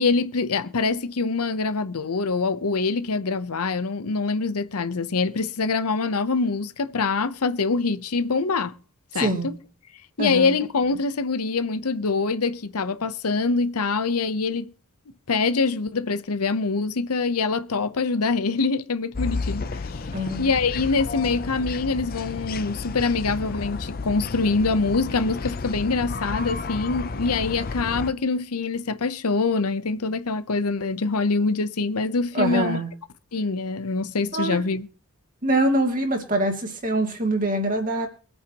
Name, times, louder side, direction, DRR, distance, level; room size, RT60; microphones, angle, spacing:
voice 1, 0.0-8.7 9.1-9.5 10.2-14.7 15.3-20.0 20.4-32.8 33.3-34.9, left 4 dB, 85° left, 0.8 m, -24 dB
voice 2, 9.1-9.5 10.2-10.6 20.1-20.5 32.3-32.9 34.3-34.6 35.4-38.1, right 1 dB, 35° right, 2.4 m, -24 dB
sound 1, 19.1-28.1, left 3 dB, 40° left, 0.6 m, -32 dB
23.5 x 8.9 x 3.0 m
head